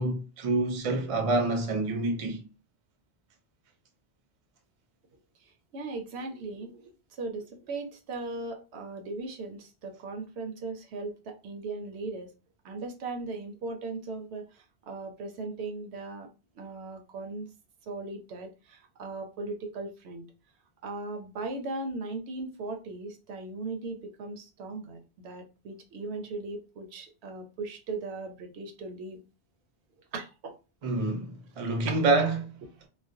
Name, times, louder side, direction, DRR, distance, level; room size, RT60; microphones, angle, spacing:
voice 1, 0.0-2.4 30.8-32.5, right 2 dB, 45° right, 0.5 m, -27 dB
voice 2, 5.7-6.9 7.2-12.3 12.6-16.3 16.6-17.5 17.9-20.2 20.8-29.2 30.1-30.5 31.9-32.0, right 3 dB, 80° right, 0.8 m, -38 dB
2.4 x 2.1 x 2.5 m
omnidirectional pair, 1.1 m